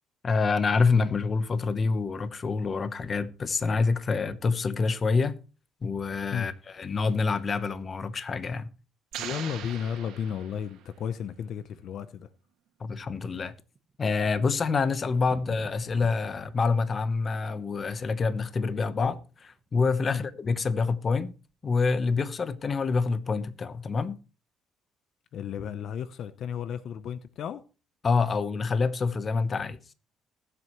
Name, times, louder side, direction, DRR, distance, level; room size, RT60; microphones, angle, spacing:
voice 1, 0.2-5.4 5.8-8.7 12.8-13.5 14.0-21.3 21.6-24.2 28.0-29.8, left 4 dB, 30° left, 0.9 m, -27 dB
sound 1, 9.1-11.0, right 10 dB, 80° right, 2.1 m, -40 dB
voice 2, 9.2-12.3 20.1-20.2 25.3-27.6, left 8 dB, 60° left, 0.7 m, -33 dB
Thunder, 13.7-19.7 19.9-20.0 20.3-20.4 20.7-20.8 21.3-21.6, right 4 dB, 30° right, 1.0 m, -51 dB
20.5 x 7.9 x 3.0 m
cardioid pair, 130°, 0 cm